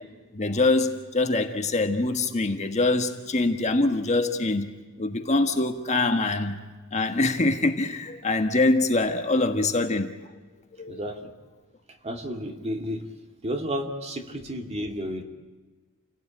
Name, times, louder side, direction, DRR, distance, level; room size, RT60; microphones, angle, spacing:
voice 1, 0.3-4.7 5.0-6.6 6.9-10.1 10.7-11.1, left 2 dB, 35° left, 5 dB, 1.5 m, -24 dB
voice 2, 10.9-11.3 12.0-13.1 13.4-15.2, equal, 30° right, 4 dB, 2.2 m, -32 dB
29.0 x 17.5 x 8.9 m, 1.4 s
head